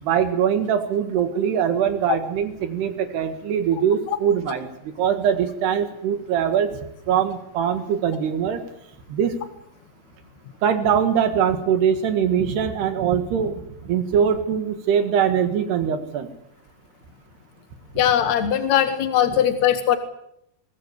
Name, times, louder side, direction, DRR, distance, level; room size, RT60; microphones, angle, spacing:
voice 1, 0.0-4.7 5.0-6.7 7.1-8.6 9.1-9.4 10.6-16.3 18.0-18.1, right 8 dB, 70° right, 8 dB, 3.7 m, -22 dB
voice 2, 18.0-20.0, left 10 dB, 75° left, 9 dB, 1.6 m, -20 dB
22.5 x 18.0 x 8.2 m, 0.76 s
omnidirectional pair, 5.1 m